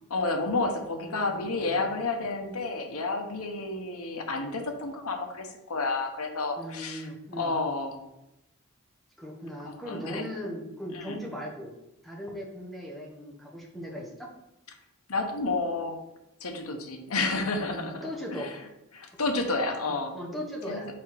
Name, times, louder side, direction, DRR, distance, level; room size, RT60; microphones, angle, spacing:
voice 1, 0.1-7.1 7.4-8.1 9.6-10.2 10.9-11.2 15.1-16.0 16.4-18.0 18.3-18.5 18.9-20.1 20.7-20.8, left 3 dB, 90° left, 4 dB, 1.1 m, -30 dB
voice 2, 1.0-2.0 6.6-7.6 9.2-11.7 12.0-14.3 17.7-18.6 19.5-19.7 20.1-20.9, equal, ahead, -3 dB, 1.3 m, -38 dB
4.8 x 4.2 x 5.7 m, 0.89 s
head